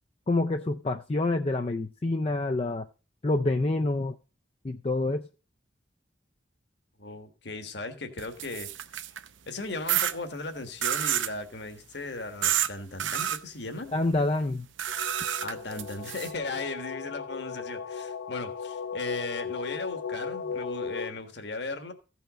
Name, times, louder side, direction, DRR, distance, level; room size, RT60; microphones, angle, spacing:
voice 1, 0.3-2.9 3.2-4.1 4.6-5.3 13.9-14.7, left 2 dB, 30° left, 5 dB, 0.4 m, -27 dB
voice 2, 7.0-9.0 9.5-13.9 15.4-21.9, left 2 dB, 65° left, 7 dB, 1.6 m, -37 dB
sound 1, 8.2-9.3 9.9-10.1 10.8-11.3 12.4-12.7 13.0-13.4 14.8-16.3, right 10 dB, 80° right, 0.7 m, -29 dB
sound 2, 14.9-21.1, left 6 dB, 90° left, 0.9 m, -37 dB
15.5 x 5.7 x 5.1 m, 0.34 s
head